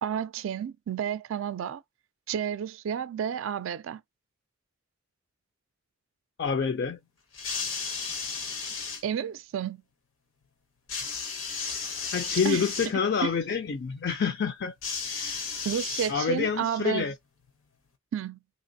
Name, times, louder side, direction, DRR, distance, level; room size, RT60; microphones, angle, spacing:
voice 1, 0.0-1.8 2.3-4.0 9.0-9.8 12.4-12.7 13.2-13.3 15.6-17.1 18.1-18.4, right 8 dB, 75° right, 0.3 m, -31 dB
voice 2, 6.4-7.0 12.1-14.7 15.0-15.6 16.1-17.1, left 6 dB, 55° left, 0.4 m, -28 dB
sound 1, 7.3-9.0 10.9-12.9 14.8-16.5 17.5-17.6, left 5 dB, 85° left, 1.0 m, -34 dB
3.2 x 2.9 x 2.6 m
head